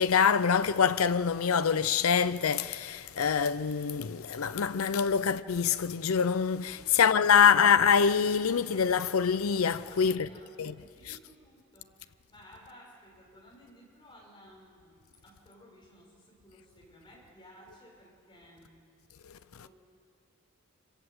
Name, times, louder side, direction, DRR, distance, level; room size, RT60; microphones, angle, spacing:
voice 1, 0.0-10.3 10.6-10.7, left 7 dB, 80° left, 0.6 m, -25 dB
voice 2, 6.7-7.5 9.9-18.8 19.6-19.7, equal, 20° left, 6.4 m, -56 dB
26.5 x 22.0 x 8.0 m
head